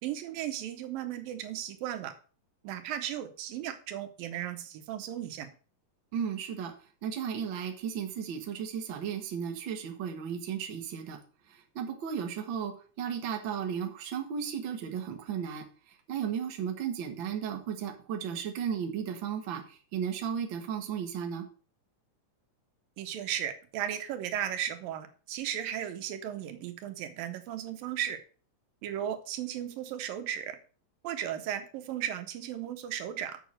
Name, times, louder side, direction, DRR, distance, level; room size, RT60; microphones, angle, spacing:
voice 1, 0.0-2.1 2.6-5.5 23.0-28.2 28.8-30.6 31.0-33.4, right 10 dB, 85° right, 8 dB, 2.8 m, -35 dB
voice 2, 6.1-6.7 7.0-11.2 11.5-15.6 16.1-21.5, right 8 dB, 50° right, 4 dB, 1.6 m, -35 dB
7.5 x 6.5 x 6.3 m, 0.39 s
omnidirectional pair, 3.9 m